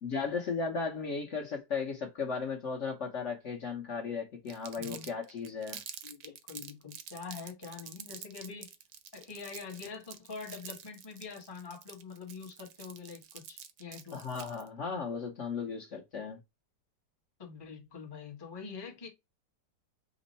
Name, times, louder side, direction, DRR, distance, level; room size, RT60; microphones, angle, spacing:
voice 1, 0.0-5.8 14.1-16.4, left 5 dB, 50° left, 1.1 m, -36 dB
Crumpling crinkling, 4.5-14.7, right 9 dB, 75° right, 1.2 m, -47 dB
voice 2, 6.0-8.7 9.1-14.2 17.4-19.1, left 5 dB, 20° left, 0.8 m, -45 dB
5.3 x 2.1 x 3.9 m
omnidirectional pair, 1.8 m